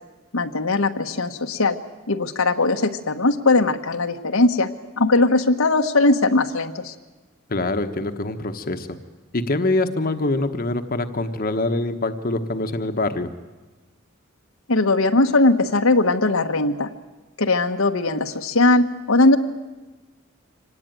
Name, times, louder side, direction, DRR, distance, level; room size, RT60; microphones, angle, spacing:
voice 1, 0.3-1.8 2.1-4.7 5.0-6.9 14.7-16.9 17.4-19.4, left 2 dB, 85° left, 5 dB, 1.3 m, -19 dB
voice 2, 7.5-8.9 9.3-13.3, left 2 dB, 45° left, 7 dB, 1.2 m, -24 dB
25.5 x 18.5 x 9.2 m, 1.2 s
head